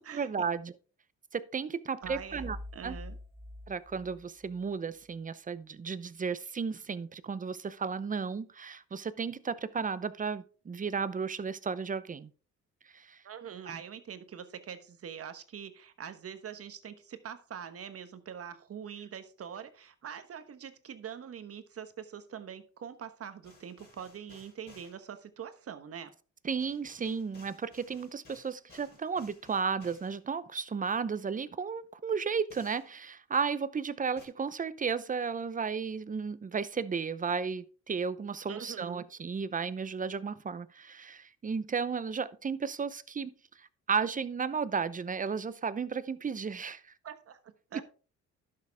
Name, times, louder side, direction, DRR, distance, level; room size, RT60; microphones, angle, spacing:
voice 1, 0.1-0.7 1.3-2.6 2.8-3.0 3.7-12.3 12.9-13.2 13.7-13.8 26.4-43.3 43.6-46.9, right 5 dB, 25° right, 0.7 m, -34 dB
sound 1, 2.0-4.7, left 1 dB, 10° right, 1.2 m, -45 dB
voice 2, 2.0-2.5 2.7-3.2 13.2-26.1 38.5-39.0 47.0-47.8, right 8 dB, 50° right, 1.2 m, -44 dB
sound 2, 23.4-25.0 26.6-30.2 32.5-32.9 34.2-34.3, left 3 dB, 35° left, 4.7 m, -58 dB
11.5 x 6.8 x 3.5 m
cardioid pair, 90°, 30 cm